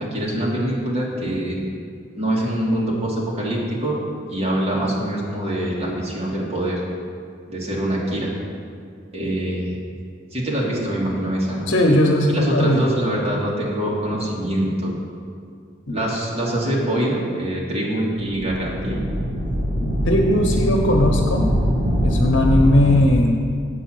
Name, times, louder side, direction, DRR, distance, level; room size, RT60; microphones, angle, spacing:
voice 1, 0.1-1.6 2.1-4.0 4.3-6.8 7.5-8.3 9.1-9.8 10.3-11.7 12.3-14.9 15.9-19.0, right 1 dB, 35° right, -4 dB, 2.0 m, -24 dB
voice 2, 11.7-12.8 15.9-16.0 19.8-21.5 22.0-23.4, left 1 dB, 85° left, 1 dB, 0.9 m, -18 dB
sound 1, 18.2-23.0, equal, 70° right, 2.6 m, -22 dB
8.1 x 5.4 x 7.7 m, 2.2 s
head